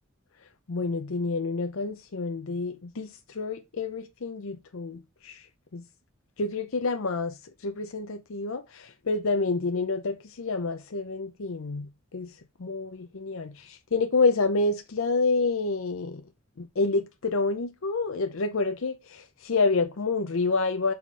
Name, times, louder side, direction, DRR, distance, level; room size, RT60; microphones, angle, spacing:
voice 1, 0.7-5.4 5.7-5.8 6.4-7.3 7.6-12.3 12.6-16.2 16.6-20.9, left 3 dB, 75° left, 0.6 m, -28 dB
5.8 x 4.3 x 4.6 m
head